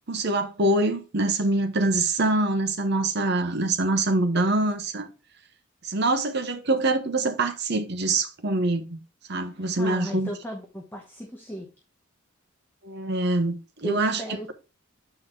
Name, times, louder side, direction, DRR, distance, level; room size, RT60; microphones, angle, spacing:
voice 1, 0.1-5.1 5.8-9.0 9.3-10.3 12.8-14.2, right 2 dB, 55° right, 1.0 m, -24 dB
voice 2, 9.8-11.7 13.8-14.5, equal, 10° left, 1.0 m, -34 dB
7.8 x 4.3 x 3.8 m
head